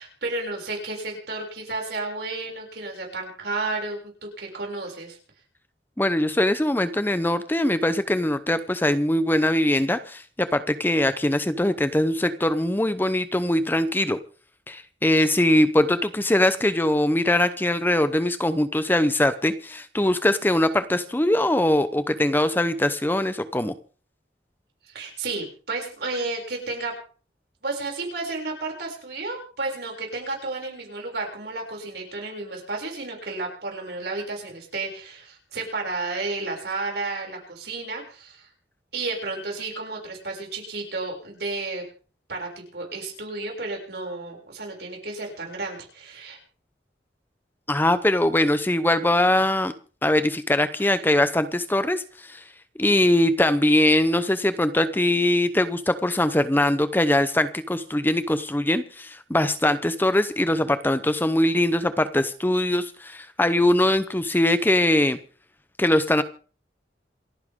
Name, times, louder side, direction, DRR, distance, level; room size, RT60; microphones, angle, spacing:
voice 1, 0.0-5.2 24.8-27.0 27.6-38.5 38.9-41.8 42.3-46.4 50.8-50.9, right 3 dB, 65° right, 0 dB, 6.5 m, -32 dB
voice 2, 6.0-14.2 14.7-23.7 47.7-49.7 50.0-52.4 52.8-65.2 65.8-66.2, left 1 dB, 10° left, 12 dB, 0.7 m, -22 dB
28.0 x 10.0 x 3.7 m, 0.41 s
head